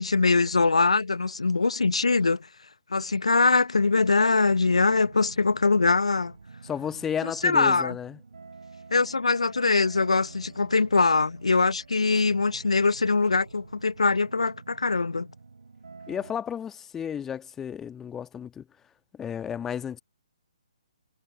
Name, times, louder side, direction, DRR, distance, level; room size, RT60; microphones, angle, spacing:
voice 1, 0.0-2.4 2.9-6.3 7.4-7.9 8.9-15.3, left 3 dB, 65° left, 1.0 m, -22 dB
sound 1, 4.6-16.4, right 4 dB, 60° right, 6.9 m, -48 dB
voice 2, 6.6-8.2 16.1-18.6 19.1-20.0, left 8 dB, 10° left, 1.4 m, -33 dB
figure-of-eight pair, 135°, 4 cm